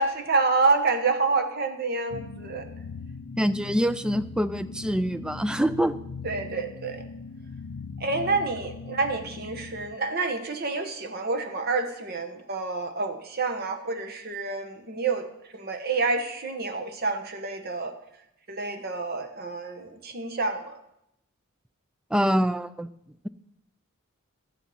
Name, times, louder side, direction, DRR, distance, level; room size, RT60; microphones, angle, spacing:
voice 1, 0.0-2.7 6.2-7.0 8.0-15.2 15.5-17.9 18.5-20.8, right 3 dB, 45° right, 5 dB, 1.2 m, -28 dB
sound 1, 2.1-9.9, left 5 dB, 75° left, 0.5 m, -40 dB
voice 2, 3.4-6.0 22.1-22.9, equal, 5° right, 13 dB, 0.3 m, -25 dB
12.5 x 7.1 x 5.6 m, 0.81 s
head